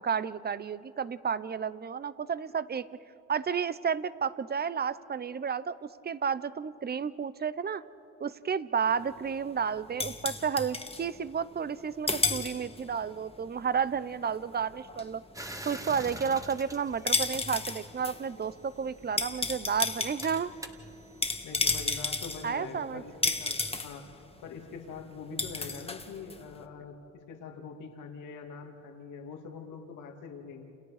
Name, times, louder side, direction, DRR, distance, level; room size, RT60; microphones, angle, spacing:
voice 1, 0.0-2.9 3.3-7.8 8.2-15.2 15.6-20.5 22.4-23.0, right 6 dB, 35° right, 16 dB, 0.9 m, -32 dB
sound 1, 8.9-11.8 12.1-13.0 13.3-26.6, left 3 dB, 20° left, 1.7 m, -33 dB
sound 2, 15.3-18.0 18.9-22.1, right 1 dB, 10° right, 2.0 m, -46 dB
voice 2, 21.4-24.0 24.4-30.7, left 5 dB, 85° left, 3 dB, 2.5 m, -44 dB
30.0 x 29.0 x 5.0 m, 2.7 s
cardioid pair, 90°, 30 cm